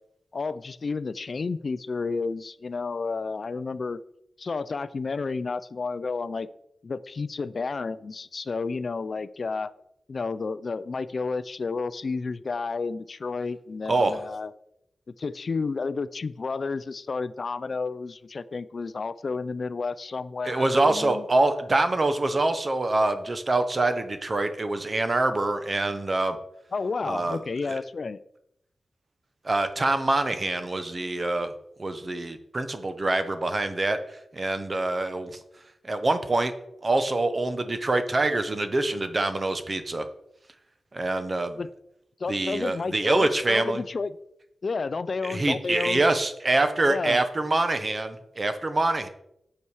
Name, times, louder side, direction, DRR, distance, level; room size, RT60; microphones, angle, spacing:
voice 1, 0.3-4.0 4.4-6.5 6.8-9.7 10.1-14.5 15.2-21.2 26.7-28.2 41.6-41.7 42.2-44.1 44.6-46.0 46.8-47.2, left 4 dB, 45° left, 15 dB, 0.3 m, -31 dB
voice 2, 13.9-14.2 20.4-26.4 27.0-27.8 29.4-31.5 31.8-34.0 34.3-35.4 35.8-36.5 36.8-40.0 40.9-41.6 42.3-43.8 45.2-49.1, right 2 dB, 30° right, 9 dB, 0.8 m, -25 dB
8.4 x 6.8 x 4.7 m, 0.81 s
wide cardioid pair, 150°, 0 cm